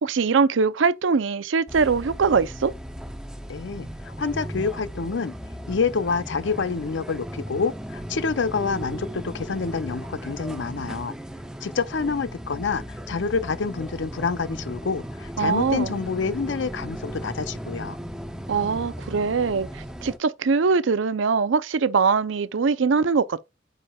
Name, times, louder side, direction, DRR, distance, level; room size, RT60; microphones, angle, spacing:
voice 1, 0.0-2.7 15.4-15.9 18.5-23.4, right 5 dB, 80° right, 0.5 m, -22 dB
sound 1, 1.7-20.2, equal, 5° right, 0.5 m, -36 dB
voice 2, 3.5-5.3 5.7-11.1 11.6-18.0, left 5 dB, 75° left, 0.6 m, -27 dB
8.5 x 5.0 x 2.3 m
head